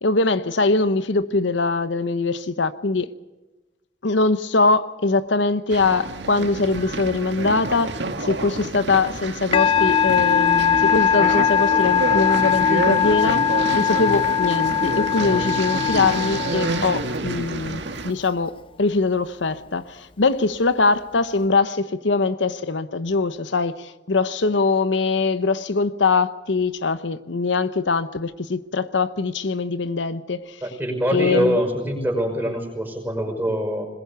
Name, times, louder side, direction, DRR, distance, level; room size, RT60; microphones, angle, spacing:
voice 1, 0.0-3.1 4.0-7.9 8.2-13.4 13.7-30.6 31.1-31.6, left 3 dB, 75° left, 0.9 m, -22 dB
sound 1, 5.7-18.1, right 2 dB, 70° right, 1.8 m, -29 dB
Musical instrument, 9.5-17.2, left 8 dB, 30° left, 0.7 m, -20 dB
voice 2, 30.6-33.9, equal, 10° right, 5.6 m, -24 dB
21.5 x 21.0 x 6.9 m
head